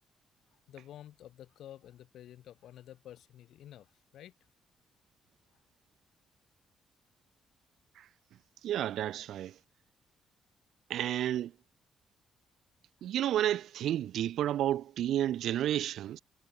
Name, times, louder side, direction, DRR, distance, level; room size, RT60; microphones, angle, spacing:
voice 1, 0.7-4.3, left 12 dB, 75° left, 2.7 m, -51 dB
voice 2, 8.6-9.5 10.9-11.5 13.0-16.2, right 12 dB, 75° right, 0.4 m, -31 dB
cardioid pair, 90°, 0 cm